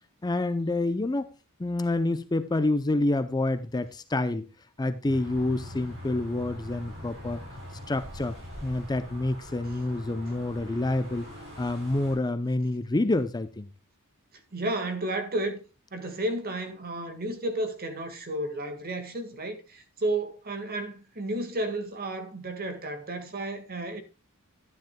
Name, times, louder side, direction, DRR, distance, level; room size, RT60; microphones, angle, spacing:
voice 1, 0.2-1.3 1.6-4.5 4.8-7.4 7.9-8.4 8.6-11.3 11.6-13.7, left 2 dB, 20° left, 0.5 m, -28 dB
sound 1, 5.1-12.2, left 1 dB, 60° right, 6.5 m, -43 dB
voice 2, 14.5-15.6 15.9-24.0, right 1 dB, 45° right, 1.7 m, -32 dB
12.0 x 10.5 x 2.2 m
head